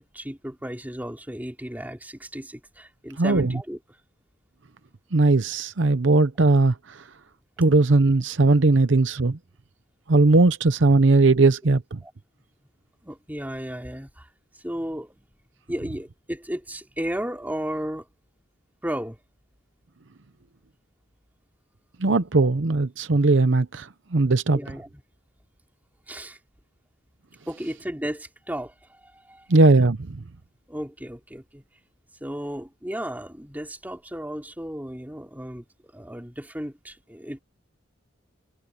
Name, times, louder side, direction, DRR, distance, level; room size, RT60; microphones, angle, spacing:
voice 1, 0.1-3.8 12.0-12.1 13.0-14.3 14.5-15.3 15.7-18.1 18.8-19.2 22.4-22.5 24.5-25.0 26.1-26.4 27.5-29.5 30.7-31.6 32.2-37.4, equal, 10° right, 3.3 m, -34 dB
voice 2, 3.2-3.5 5.1-7.0 7.6-9.4 10.1-12.0 22.0-24.6 29.5-30.2, right 3 dB, 65° right, 0.8 m, -19 dB
head